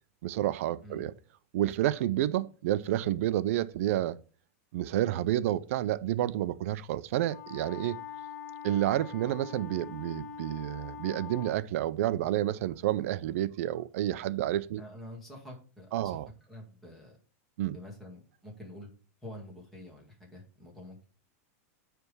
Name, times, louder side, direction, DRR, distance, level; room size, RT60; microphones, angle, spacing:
voice 1, 0.2-1.1 1.5-4.2 4.7-8.0 8.6-14.8 15.9-16.3 17.6-17.8, right 13 dB, 60° right, 0.5 m, -30 dB
Wind instrument woodwind instrument, 7.2-11.6, left 6 dB, 85° left, 1.6 m, -43 dB
voice 2, 14.8-16.2 16.5-17.1 17.7-18.9 19.2-21.1, left 1 dB, ahead, 2.0 m, -47 dB
9.1 x 3.4 x 5.4 m
supercardioid pair, 160°, 8 cm